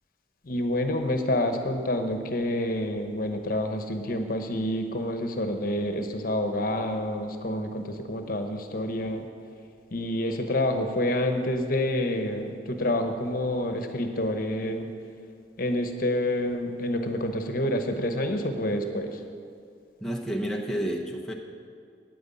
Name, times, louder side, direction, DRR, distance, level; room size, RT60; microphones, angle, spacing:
voice 1, 0.5-9.3 9.9-14.9 15.6-19.2, left 1 dB, 50° left, 6 dB, 1.0 m, -28 dB
voice 2, 20.0-21.3, equal, 5° left, 0 dB, 0.8 m, -30 dB
9.5 x 9.3 x 8.5 m, 2.3 s
head